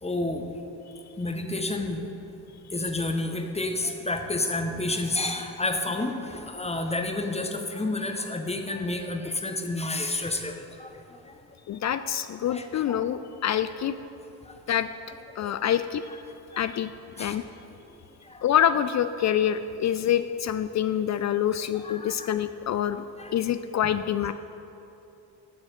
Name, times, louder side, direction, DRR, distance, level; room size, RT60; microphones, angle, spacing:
voice 1, 0.0-0.4 1.2-2.1 2.7-11.3 12.5-13.0 14.4-14.6 15.4-15.5 16.5-16.6 17.2-17.4 18.2-18.4 21.8-22.3 23.2-23.3, left 2 dB, 15° left, 5 dB, 1.2 m, -30 dB
voice 2, 11.7-14.0 14.7-14.9 15.4-16.1 16.5-16.9 17.2-17.4 18.4-23.0 23.3-24.3, left 10 dB, 40° left, 11 dB, 0.4 m, -26 dB
13.5 x 6.3 x 4.4 m, 2.9 s
hypercardioid pair, 45°, 48 cm